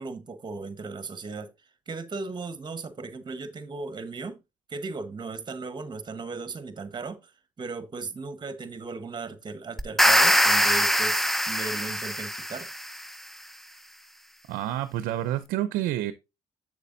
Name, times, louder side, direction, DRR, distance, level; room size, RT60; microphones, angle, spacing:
voice 1, 0.0-1.5 1.9-4.4 4.7-7.3 7.6-12.7, right 3 dB, 30° right, 1.2 m, -37 dB
sound 1, 9.8-13.0, equal, ahead, 0.5 m, -22 dB
voice 2, 14.5-16.1, right 13 dB, 80° right, 0.6 m, -28 dB
7.9 x 6.7 x 2.7 m
supercardioid pair, 80°, 15 cm